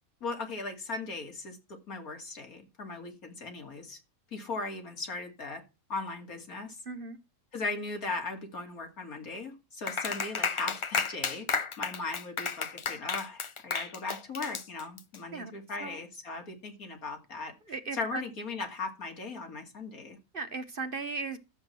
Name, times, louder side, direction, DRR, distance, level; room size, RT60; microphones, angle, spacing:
voice 1, 0.2-1.6 1.9-4.0 4.3-5.6 5.9-6.8 7.5-11.5 11.8-17.5 17.9-20.2, left 3 dB, 75° left, 3.0 m, -38 dB
voice 2, 6.9-7.2 15.3-15.5 15.8-16.0 17.7-18.2 20.3-21.4, right 3 dB, 40° right, 1.1 m, -36 dB
Clapping, 9.9-15.2, left 5 dB, 45° left, 0.4 m, -33 dB
12.5 x 7.8 x 4.4 m
omnidirectional pair, 1.5 m